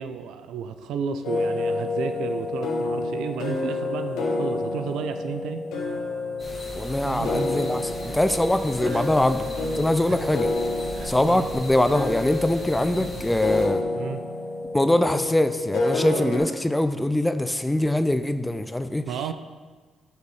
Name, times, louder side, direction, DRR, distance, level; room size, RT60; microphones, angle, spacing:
voice 1, 0.0-5.7 7.0-7.5 8.8-9.1 10.1-10.2 10.9-11.5 13.9-14.2 19.0-19.3, right 7 dB, 85° right, 9 dB, 0.4 m, -33 dB
sound 1, 1.2-16.4, left 2 dB, 85° left, 1.2 m, -29 dB
sound 2, 6.4-13.7, right 1 dB, 25° left, 1.8 m, -39 dB
voice 2, 6.7-10.5 11.0-13.8 14.7-19.0, left 1 dB, 10° left, 10 dB, 0.4 m, -23 dB
sound 3, 7.4-14.8, right 2 dB, 70° right, 1.7 m, -46 dB
6.8 x 4.4 x 4.8 m, 1.4 s
cardioid pair, 90°, 0 cm